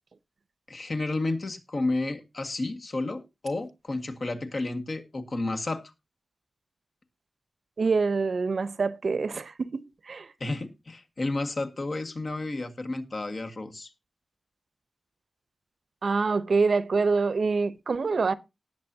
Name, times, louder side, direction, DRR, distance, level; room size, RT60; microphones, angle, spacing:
voice 1, 0.7-5.8 10.4-13.9, left 2 dB, 50° left, 1.8 m, -31 dB
voice 2, 7.8-10.3 16.0-18.3, right 4 dB, 65° right, 0.8 m, -26 dB
18.5 x 7.5 x 2.8 m
wide cardioid pair, 90°, 0 cm